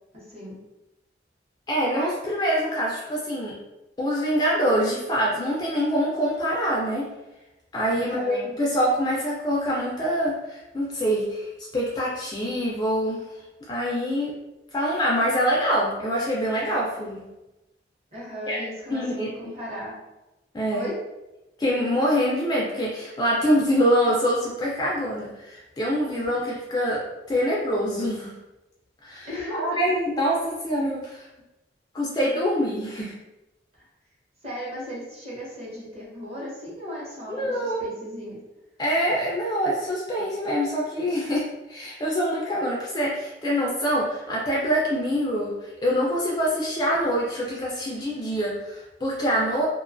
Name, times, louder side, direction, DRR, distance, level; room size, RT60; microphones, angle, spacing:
voice 1, 0.1-0.6 8.0-8.5 18.1-20.0 20.7-21.0 26.1-26.3 29.2-29.8 33.8-33.9 34.4-38.4, equal, 35° right, -6 dB, 0.8 m, -36 dB
voice 2, 1.7-3.6 4.0-7.1 7.7-13.2 13.7-14.3 14.7-17.2 18.5-18.6 18.9-19.3 20.5-20.9 21.6-27.0 27.3-28.3 29.0-31.3 31.9-33.1 37.3-37.9 38.8-45.5 45.8-49.7, equal, 20° left, -4 dB, 0.3 m, -25 dB
2.4 x 2.2 x 2.4 m, 0.99 s
head